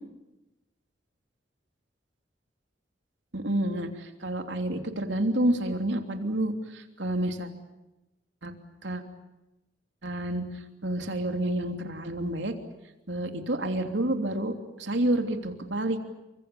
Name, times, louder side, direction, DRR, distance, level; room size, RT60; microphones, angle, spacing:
voice 1, 3.3-7.5 8.4-8.5 8.8-9.0 10.0-10.4 10.8-12.5 13.1-16.0, right 1 dB, 75° right, 5 dB, 3.2 m, -29 dB
29.0 x 25.0 x 7.0 m, 0.97 s
head